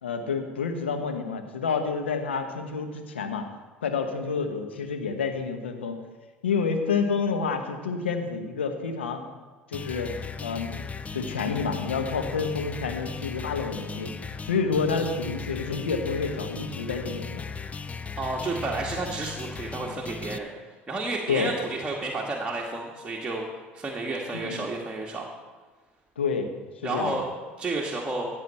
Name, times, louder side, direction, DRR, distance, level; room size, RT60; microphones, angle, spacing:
voice 1, 0.0-3.5 3.8-6.0 6.4-9.2 9.7-10.1 10.4-10.8 11.1-17.4 21.3-21.5 24.3-24.7 26.2-26.5 26.8-27.2, left 5 dB, 85° left, 5 dB, 1.1 m, -29 dB
sound 1, 9.7-20.4, left 5 dB, 25° left, 0.7 m, -37 dB
voice 2, 18.2-20.5 20.9-23.5 23.7-25.2 26.8-27.3 27.6-28.3, right 3 dB, 15° right, -3 dB, 1.8 m, -31 dB
15.0 x 8.3 x 4.3 m, 1.3 s
hypercardioid pair, 70°, 6 cm